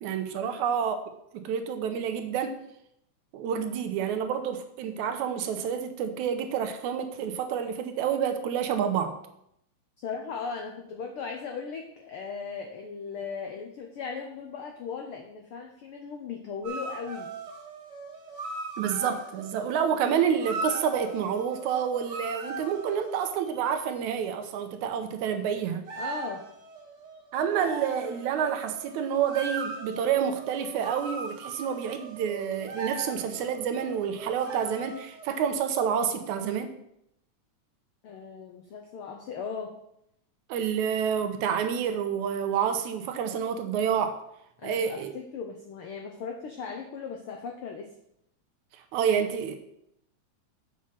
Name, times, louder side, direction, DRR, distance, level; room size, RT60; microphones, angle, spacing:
voice 1, 0.0-1.0 1.3-2.6 3.3-9.2 18.8-25.9 27.3-36.7 40.5-44.2 44.6-45.1 48.9-49.6, right 8 dB, 75° right, 7 dB, 2.1 m, -28 dB
voice 2, 10.0-17.3 26.0-26.5 38.0-39.7 44.6-47.9, left 5 dB, 80° left, 3 dB, 1.2 m, -37 dB
sound 1, 16.6-23.6 25.9-35.5, right 3 dB, 50° right, 2.4 m, -39 dB
7.5 x 6.1 x 5.7 m, 0.77 s
omnidirectional pair, 3.5 m